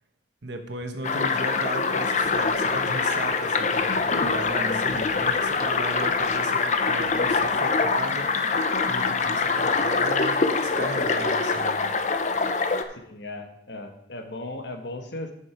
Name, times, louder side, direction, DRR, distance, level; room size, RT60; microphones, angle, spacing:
voice 1, 0.4-8.3 8.9-11.9, right 2 dB, 70° right, 5 dB, 1.2 m, -36 dB
sound 1, 1.0-12.8, left 4 dB, 40° left, 0.6 m, -24 dB
voice 2, 4.6-5.2 12.9-15.3, left 2 dB, 70° left, 5 dB, 1.2 m, -37 dB
8.1 x 6.4 x 5.7 m, 0.74 s
head